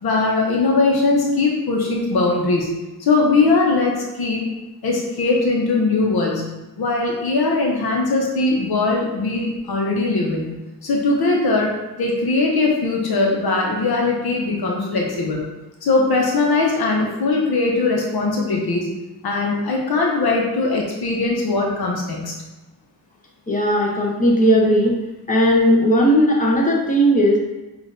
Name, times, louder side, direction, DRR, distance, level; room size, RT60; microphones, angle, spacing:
voice 1, 0.0-2.7 3.0-4.4 4.8-6.5 6.8-10.5 10.8-11.7 12.0-15.4 15.8-18.9 19.2-22.3, left 3 dB, 90° left, -1 dB, 0.8 m, -20 dB
voice 2, 23.5-25.0 25.3-27.4, equal, 20° left, -2 dB, 0.8 m, -16 dB
5.9 x 2.5 x 2.6 m, 1.1 s
wide cardioid pair, 95°, 36 cm